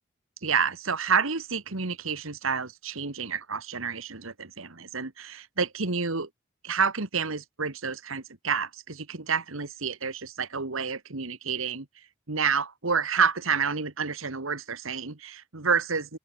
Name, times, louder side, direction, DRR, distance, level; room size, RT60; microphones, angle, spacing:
voice 1, 0.4-6.3 6.6-11.9 12.3-16.2, right 5 dB, 80° right, 1.8 m, -29 dB
open air
head